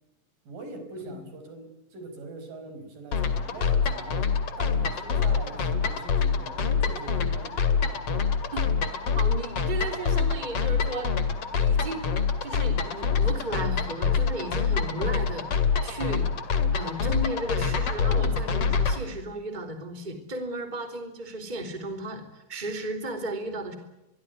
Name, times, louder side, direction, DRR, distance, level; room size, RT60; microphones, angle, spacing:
voice 1, 0.5-7.5, right 2 dB, 80° right, 8 dB, 6.8 m, -42 dB
sound 1, 3.1-19.0, left 5 dB, 50° left, 2.9 m, -26 dB
voice 2, 9.1-11.1 11.5-12.1 12.4-16.3 16.7-23.8, right 1 dB, 15° right, 5 dB, 3.3 m, -35 dB
25.0 x 23.0 x 9.4 m, 0.93 s
omnidirectional pair, 3.9 m